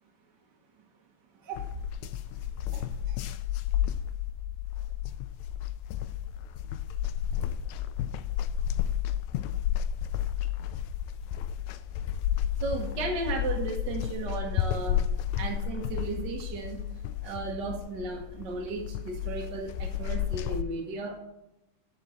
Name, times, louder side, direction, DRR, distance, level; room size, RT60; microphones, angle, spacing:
sound 1, 1.6-20.6, left 10 dB, 80° left, 1.7 m, -32 dB
voice 1, 2.7-3.2 12.6-15.0 15.4-16.8 17.2-21.2, right 3 dB, 50° right, 0 dB, 1.3 m, -35 dB
11.0 x 5.5 x 6.3 m, 0.90 s
omnidirectional pair, 3.7 m